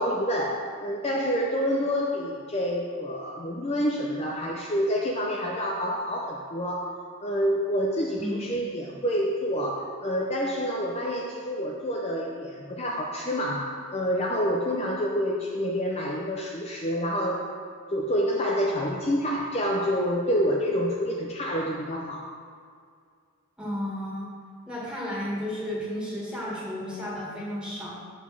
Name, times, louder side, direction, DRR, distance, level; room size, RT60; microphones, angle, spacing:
voice 1, 0.0-17.5 17.9-22.3, equal, 30° left, -2 dB, 0.5 m, -28 dB
voice 2, 8.1-8.5 23.6-24.3 24.7-27.9, left 1 dB, 5° right, -7 dB, 1.8 m, -33 dB
7.4 x 4.0 x 6.0 m, 2.1 s
head